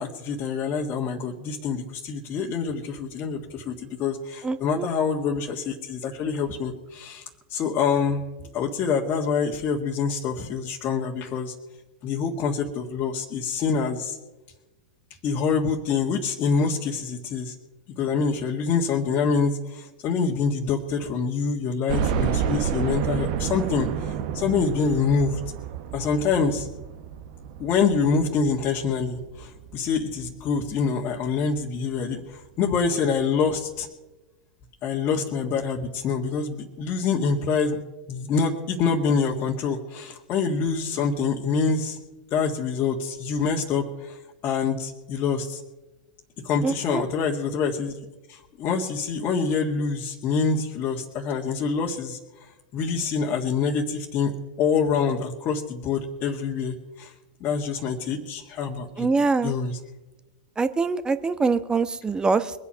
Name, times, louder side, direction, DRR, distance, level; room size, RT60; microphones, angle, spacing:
voice 1, 0.0-8.2 8.5-11.5 12.0-14.2 15.2-17.6 18.0-25.4 25.9-26.7 27.6-33.9 34.8-37.8 38.1-42.0 42.3-45.6 46.4-47.9 48.3-54.3 54.6-57.1 57.4-59.1 59.4-59.8, left 5 dB, 40° left, -1 dB, 1.7 m, -26 dB
voice 2, 4.4-4.9 46.6-47.0 59.0-59.6 60.6-62.5, right 4 dB, 15° right, 13 dB, 1.0 m, -24 dB
sound 1, 21.9-30.8 31.3-31.4 31.7-31.8 33.0-33.1 33.4-33.5, right 8 dB, 60° right, 1.2 m, -30 dB
22.5 x 8.6 x 5.7 m, 1.1 s
hypercardioid pair, 95°, 5 cm